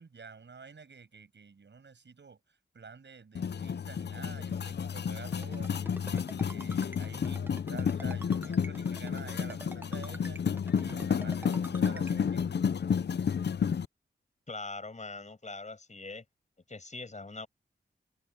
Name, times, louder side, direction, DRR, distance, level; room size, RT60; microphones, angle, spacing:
voice 1, 0.0-5.8 6.1-10.4 10.8-12.6, right 5 dB, 65° right, 6.5 m, -49 dB
sound 1, 3.3-13.8, left 7 dB, 60° left, 0.6 m, -31 dB
Ringtone, 5.3-12.1, right 1 dB, 10° right, 0.9 m, -46 dB
voice 2, 14.5-16.2 16.7-17.5, left 3 dB, 35° left, 5.9 m, -42 dB
wide cardioid pair, 115°, 20 cm